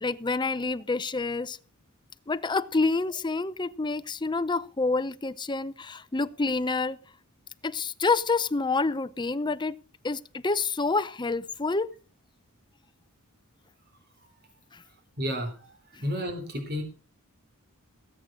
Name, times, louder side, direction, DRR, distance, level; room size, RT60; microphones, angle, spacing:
voice 1, 0.0-1.6 2.3-7.0 7.6-9.8 10.0-11.9 14.7-14.8, left 3 dB, 20° left, 0.6 m, -28 dB
voice 2, 15.2-15.7 16.0-16.8, equal, 45° right, 3.7 m, -31 dB
17.5 x 8.3 x 6.2 m
head